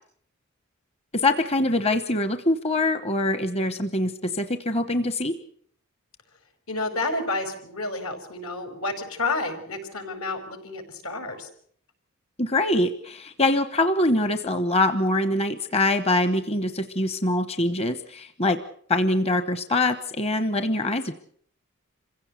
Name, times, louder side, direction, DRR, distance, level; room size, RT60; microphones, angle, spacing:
voice 1, 1.1-5.4 12.4-18.6 18.9-21.1, left 2 dB, 30° left, 10 dB, 1.0 m, -24 dB
voice 2, 6.7-11.5, left 2 dB, 75° left, 7 dB, 5.5 m, -30 dB
26.5 x 16.5 x 8.2 m, 0.63 s
head